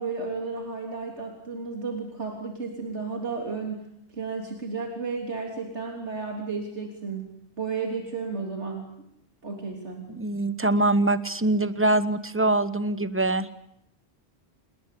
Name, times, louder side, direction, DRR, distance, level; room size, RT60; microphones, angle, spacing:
voice 1, 0.0-3.9 4.1-7.3 7.6-8.9 9.4-10.1, right 4 dB, 80° right, 2 dB, 3.8 m, -33 dB
voice 2, 10.2-13.5, right 2 dB, 10° right, 13 dB, 1.1 m, -23 dB
29.0 x 20.0 x 8.5 m, 0.77 s
omnidirectional pair, 1.2 m